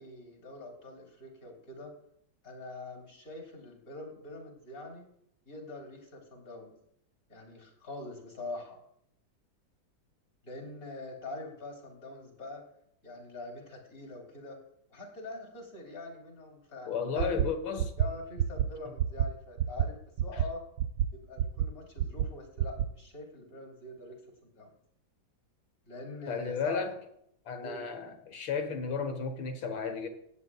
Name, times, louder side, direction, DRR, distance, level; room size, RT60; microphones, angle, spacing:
voice 1, 0.0-1.9 2.4-5.0 5.5-6.7 7.3-8.8 10.4-12.6 13.0-14.6 14.9-17.5 18.0-20.6 21.1-24.2 24.5-24.7 25.9-26.9 27.6-27.8, left 2 dB, 45° left, 3.6 m, -44 dB
voice 2, 16.9-17.9 20.3-20.4 26.3-26.9 27.5-30.1, left 5 dB, 85° left, 2.2 m, -33 dB
sound 1, 17.2-17.5 17.8-18.1 18.4-18.7 19.0-19.3 19.6-19.9 20.2-20.5 20.8-21.1 21.4-21.7 22.0-22.3 22.6-22.9, right 11 dB, 85° right, 1.3 m, -27 dB
18.0 x 8.7 x 2.4 m
omnidirectional pair, 2.1 m